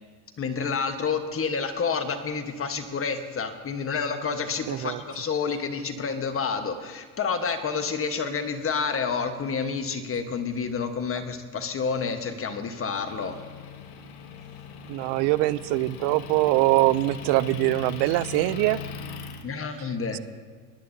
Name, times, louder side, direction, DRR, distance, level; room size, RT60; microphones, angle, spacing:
voice 1, 0.4-13.4 19.4-20.2, left 5 dB, 30° left, 7 dB, 1.2 m, -29 dB
voice 2, 4.7-5.0 14.9-18.8 20.1-20.2, right 19 dB, 65° right, 18 dB, 0.5 m, -23 dB
Motor vehicle (road) / Engine, 13.1-19.4, left 6 dB, 55° left, 1.3 m, -39 dB
20.5 x 11.0 x 2.7 m, 1.5 s
supercardioid pair, 95°, 45 cm